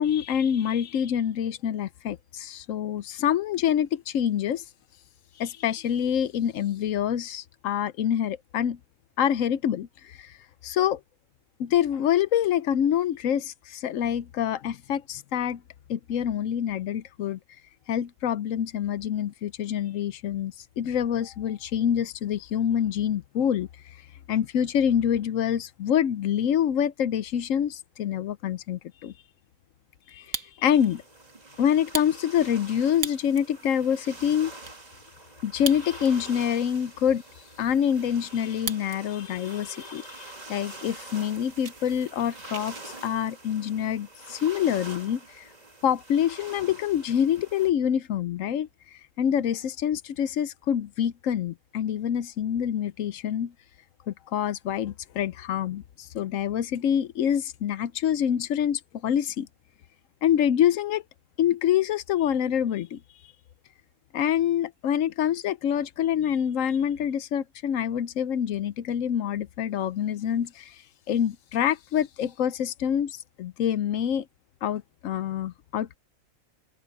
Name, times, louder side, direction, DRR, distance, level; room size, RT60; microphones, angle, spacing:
voice 1, 0.0-4.6 5.4-8.8 9.2-10.4 10.6-11.0 11.6-15.6 15.9-17.4 17.9-23.7 24.3-29.1 30.1-30.3 30.6-31.0 31.6-34.5 35.4-37.2 37.6-45.4 45.8-48.7 49.2-53.5 54.1-59.5 60.2-61.0 61.4-63.0 64.1-70.7 71.1-74.3 74.6-76.0, left 9 dB, 75° left, 1.1 m, -26 dB
Fire, 30.1-30.9 31.3-31.4 31.8-33.5 34.0-34.1 34.3-34.8 35.5-36.3 36.6-36.7 37.2-39.0 39.3-39.8 40.3-40.4 40.7-40.9 41.2-42.9, right 6 dB, 75° right, 1.8 m, -37 dB
sound 1, 30.7-47.7, right 2 dB, 30° right, 2.1 m, -46 dB
open air
omnidirectional pair, 1.4 m